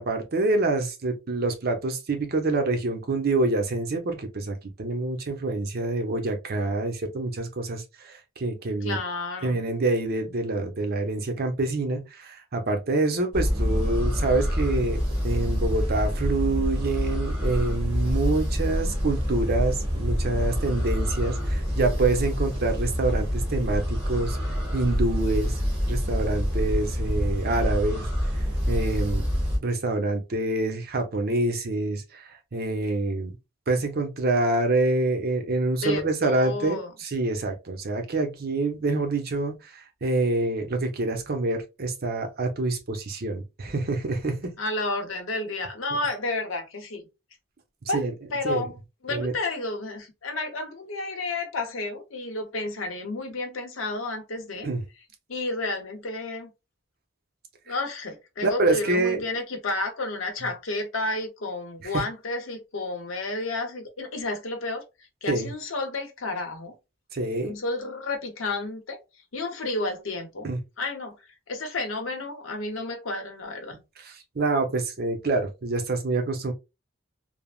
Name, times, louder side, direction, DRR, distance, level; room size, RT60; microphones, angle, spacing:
voice 1, 0.0-9.0 9.4-24.4 24.7-25.5 25.9-28.1 28.3-29.3 29.6-33.3 33.7-44.5 47.9-48.1 48.4-48.7 49.1-49.3 54.6-54.8 58.4-59.2 65.3-65.5 67.1-67.6 70.4-70.6 73.7-73.8 74.0-76.5, right 2 dB, 50° right, 0.7 m, -26 dB
voice 2, 8.8-9.6 35.8-36.9 44.6-47.1 47.9-48.0 48.3-48.8 49.0-54.7 55.3-56.5 57.7-64.8 65.2-66.7 67.3-69.0 69.3-70.5 70.8-73.8, left 2 dB, 85° left, 0.8 m, -31 dB
sound 1, 13.3-29.6, equal, 30° right, 1.6 m, -26 dB
3.3 x 2.0 x 2.3 m
head